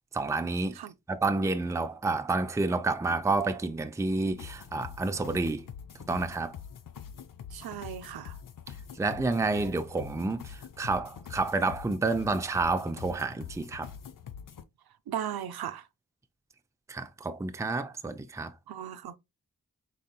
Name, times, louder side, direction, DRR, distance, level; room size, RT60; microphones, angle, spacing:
voice 1, 0.1-0.8 1.1-5.6 6.1-6.6 9.0-13.9 16.9-18.5, right 3 dB, 10° right, 0.4 m, -29 dB
sound 1, 4.3-14.6, left 8 dB, 65° left, 0.6 m, -45 dB
voice 2, 7.5-8.4 15.1-15.9 18.7-19.2, right 10 dB, 85° right, 0.5 m, -37 dB
4.1 x 3.8 x 2.2 m
cardioid pair, 45°, 36 cm